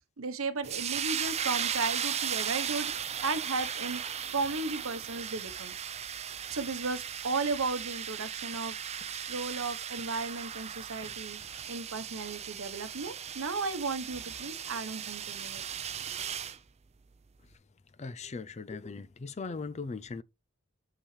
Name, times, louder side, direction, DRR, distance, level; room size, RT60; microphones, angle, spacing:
voice 1, 0.2-5.7 6.5-15.6, right 4 dB, 75° right, 1.0 m, -35 dB
sound 1, 0.6-16.6, right 8 dB, 30° right, 0.5 m, -37 dB
voice 2, 18.0-20.2, left 4 dB, 30° left, 0.4 m, -39 dB
7.1 x 5.7 x 3.2 m
head